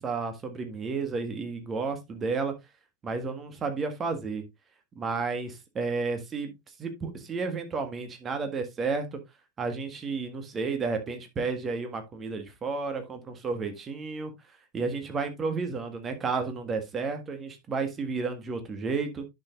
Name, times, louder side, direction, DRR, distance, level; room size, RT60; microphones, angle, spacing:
voice 1, 0.0-2.5 3.0-4.4 5.0-6.5 6.8-9.2 9.6-14.3 14.7-19.3, right 4 dB, 20° right, 1.7 m, -32 dB
10.5 x 6.4 x 2.5 m
figure-of-eight pair, 90°, 0 cm